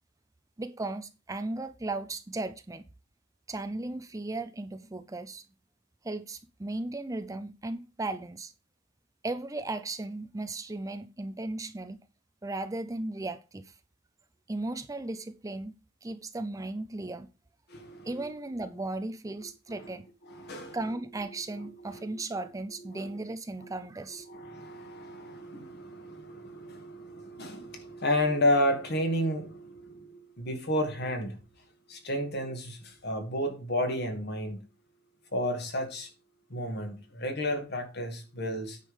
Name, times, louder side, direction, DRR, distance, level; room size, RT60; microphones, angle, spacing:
voice 1, 0.6-2.8 3.5-5.4 6.0-8.5 9.2-12.0 12.4-13.8 14.5-15.7 16.0-17.3 18.0-20.1 20.7-24.3, right 2 dB, 15° right, 0.5 m, -36 dB
voice 2, 17.7-18.3 19.4-20.0 20.3-20.8 21.6-22.2 22.9-23.2 23.6-23.7 24.3-31.4 31.9-34.6 35.3-36.1 36.5-38.8, left 1 dB, 55° left, 2.3 m, -32 dB
9.3 x 5.2 x 5.5 m
head